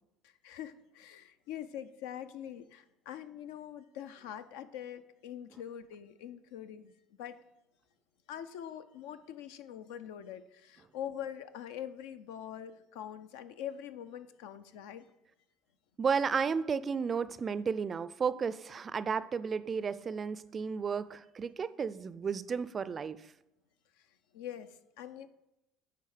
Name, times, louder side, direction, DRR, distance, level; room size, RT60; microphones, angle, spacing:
voice 1, 0.2-6.9 7.2-7.4 8.3-15.1 24.0-24.1 24.3-25.3, left 10 dB, 85° left, 12 dB, 0.4 m, -44 dB
voice 2, 16.0-23.2, right 6 dB, 35° right, 15 dB, 0.3 m, -33 dB
10.0 x 3.5 x 4.9 m, 0.90 s
supercardioid pair, 95°, 0 cm